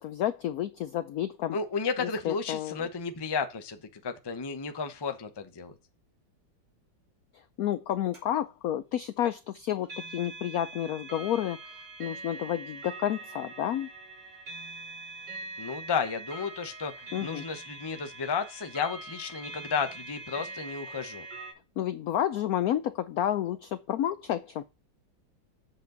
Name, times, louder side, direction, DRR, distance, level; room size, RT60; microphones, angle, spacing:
voice 1, 0.0-1.6 2.2-2.8 7.6-13.9 17.1-17.4 21.8-24.6, left 11 dB, 85° left, 0.8 m, -30 dB
voice 2, 1.5-5.7 15.6-21.3, left 5 dB, 30° left, 0.4 m, -33 dB
sound 1, 8.1-8.2 9.8-21.5, right 3 dB, 60° right, 4.5 m, -43 dB
7.7 x 7.3 x 3.9 m
omnidirectional pair, 2.2 m